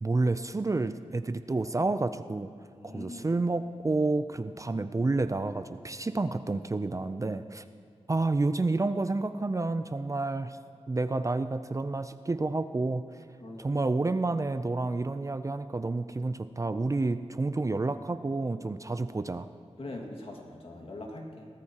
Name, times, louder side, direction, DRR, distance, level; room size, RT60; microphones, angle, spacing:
voice 1, 0.0-2.5 2.8-7.6 8.1-10.6 10.9-13.1 13.6-19.5, right 3 dB, 30° right, 11 dB, 0.4 m, -29 dB
voice 2, 2.8-3.3 13.4-13.6 19.8-21.5, left 2 dB, 55° left, 1 dB, 2.0 m, -42 dB
18.5 x 13.5 x 2.9 m, 2.5 s
wide cardioid pair, 70°, 11 cm